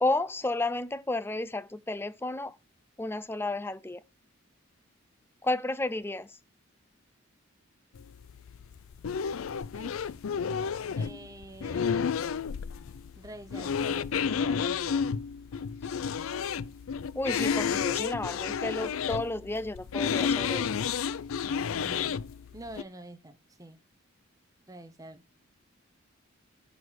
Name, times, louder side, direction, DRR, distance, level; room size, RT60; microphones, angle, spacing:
voice 1, 0.0-2.5 3.0-4.0 5.4-6.3 17.2-20.8, left 2 dB, 10° left, 0.5 m, -32 dB
sound 1, 8.0-22.8, left 6 dB, 80° left, 0.4 m, -31 dB
voice 2, 11.0-12.2 13.2-15.1 21.6-22.2 22.5-23.8 24.6-25.2, right 1 dB, 15° right, 0.9 m, -46 dB
10.5 x 4.1 x 6.3 m
head